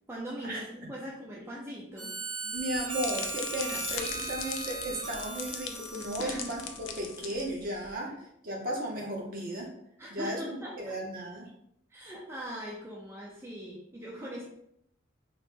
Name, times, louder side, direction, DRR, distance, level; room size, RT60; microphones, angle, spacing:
voice 1, 0.1-2.1 6.2-6.5 6.9-7.0 8.1-8.2 10.0-11.0 11.9-14.4, equal, 15° right, -5 dB, 0.4 m, -41 dB
Harmonica, 2.0-7.1, right 3 dB, 70° right, 1.1 m, -38 dB
voice 2, 2.4-8.1 8.4-9.7 10.1-11.5, right 1 dB, 45° right, 0 dB, 0.7 m, -35 dB
sound 1, 2.5-7.9, left 7 dB, 80° left, 0.3 m, -40 dB
3.0 x 2.1 x 3.2 m, 0.74 s
head